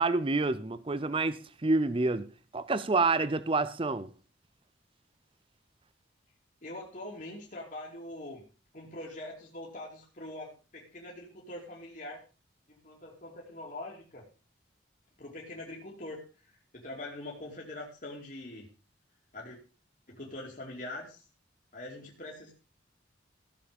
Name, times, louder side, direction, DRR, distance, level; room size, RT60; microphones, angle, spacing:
voice 1, 0.0-4.1, right 3 dB, 30° right, 0.6 m, -28 dB
voice 2, 6.6-8.4 8.7-12.2 12.7-14.2 15.2-18.7 19.3-19.6 20.1-21.2 21.7-22.5, left 1 dB, 45° left, 2.8 m, -43 dB
16.0 x 7.2 x 5.2 m
head